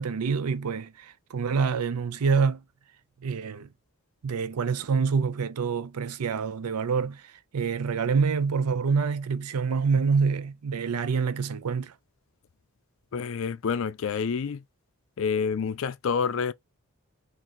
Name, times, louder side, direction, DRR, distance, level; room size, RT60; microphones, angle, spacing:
voice 1, 0.0-2.6 3.2-3.7 4.2-11.9, right 5 dB, 90° right, 0.5 m, -26 dB
voice 2, 13.1-14.6 15.2-16.5, left 6 dB, 60° left, 0.4 m, -28 dB
3.8 x 2.6 x 4.2 m
head